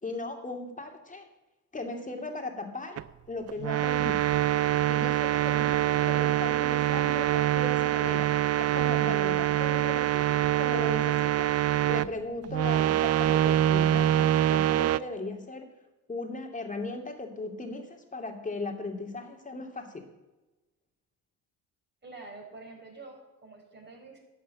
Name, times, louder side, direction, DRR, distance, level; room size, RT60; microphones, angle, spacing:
voice 1, 0.0-1.3 1.7-3.0 3.3-4.2 4.9-15.7 16.1-20.0, left 3 dB, 20° left, 3 dB, 2.6 m, -37 dB
sound 1, 3.0-3.1 3.5-12.1 12.4-15.0, right 13 dB, 45° right, 0.5 m, -25 dB
voice 2, 22.0-24.2, right 3 dB, 30° right, 1 dB, 4.8 m, -47 dB
11.5 x 6.7 x 8.7 m, 1.1 s
supercardioid pair, 70°, 35 cm